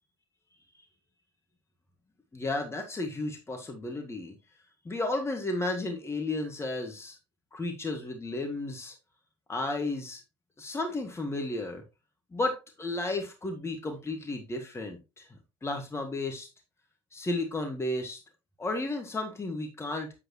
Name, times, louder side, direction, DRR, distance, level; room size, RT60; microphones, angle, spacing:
voice 1, 2.3-4.3 4.9-7.2 7.5-9.0 9.5-10.2 10.6-11.8 12.3-15.3 15.6-16.5 17.1-18.2 18.6-20.2, left 2 dB, 15° left, 3 dB, 2.0 m, -33 dB
8.9 x 7.5 x 3.1 m, 0.27 s
figure-of-eight pair, 60°, 15 cm